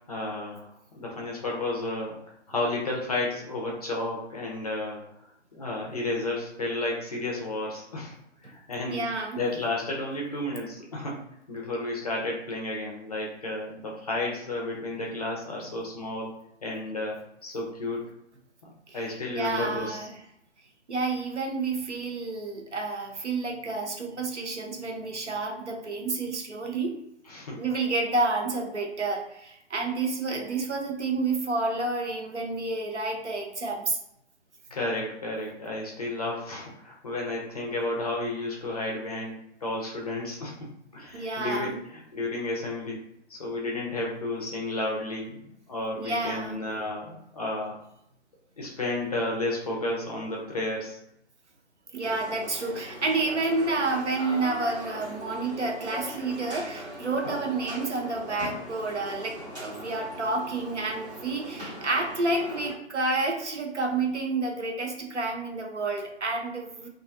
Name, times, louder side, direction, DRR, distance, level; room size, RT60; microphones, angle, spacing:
voice 1, 0.1-0.7 0.9-2.2 2.5-5.0 5.5-8.1 8.4-9.1 9.3-11.2 11.5-16.3 16.6-18.0 18.9-20.1 27.2-27.6 34.7-39.3 39.6-40.5 40.9-43.0 43.3-45.4 45.7-47.8 48.6-51.0, left 2 dB, 35° left, -2 dB, 0.5 m, -32 dB
voice 2, 8.8-9.4 15.6-15.7 18.9-20.1 20.9-27.0 27.6-34.0 41.1-41.8 46.0-46.6 51.9-66.9, right 3 dB, 75° right, 1 dB, 0.8 m, -30 dB
sound 1, 52.0-62.7, equal, 35° right, 1.1 m, -40 dB
2.4 x 2.1 x 2.5 m, 0.77 s
figure-of-eight pair, 135°, 35 cm